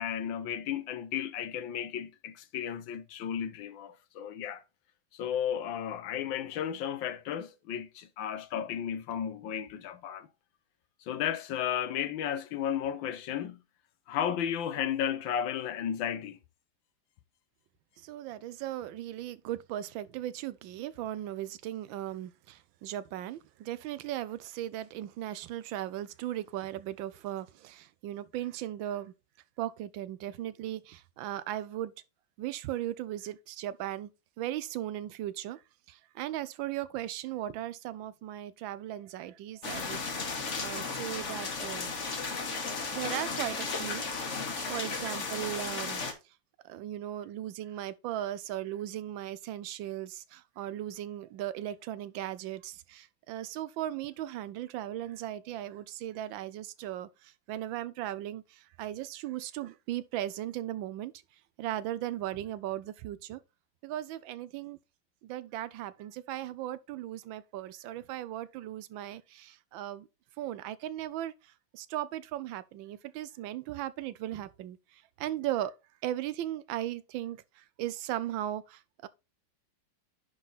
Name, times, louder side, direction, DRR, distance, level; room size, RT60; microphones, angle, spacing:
voice 1, 0.0-4.6 5.1-10.3 11.1-13.6 14.1-16.4, left 9 dB, 85° left, 1.5 m, -34 dB
voice 2, 18.0-29.1 29.6-31.9 32.4-34.1 34.4-35.6 35.9-41.9 42.9-46.0 46.6-61.1 61.6-63.4 63.8-64.8 65.2-70.1 70.4-75.7 76.0-79.1, right 13 dB, 80° right, 1.4 m, -37 dB
sound 1, 39.6-46.1, left 4 dB, 40° left, 1.4 m, -35 dB
10.5 x 3.8 x 4.0 m
omnidirectional pair, 2.1 m